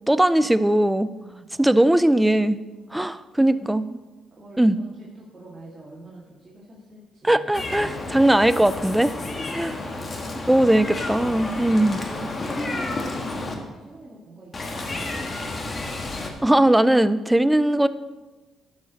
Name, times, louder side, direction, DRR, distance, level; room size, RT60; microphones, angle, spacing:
voice 1, 0.1-1.1 1.6-2.6 2.9-3.9 4.6-4.8 7.2-9.1 9.5-9.7 10.5-12.0 16.4-17.9, right 1 dB, 5° right, 14 dB, 0.4 m, -19 dB
voice 2, 1.1-2.4 2.7-3.1 3.4-3.8 4.3-7.6 9.6-10.0 11.4-15.3, equal, 25° right, -6 dB, 2.0 m, -45 dB
Meow, 7.5-13.5 14.5-16.3, left 2 dB, 35° left, 1.4 m, -31 dB
12.0 x 6.5 x 4.1 m, 1.3 s
cardioid pair, 90°, 0 cm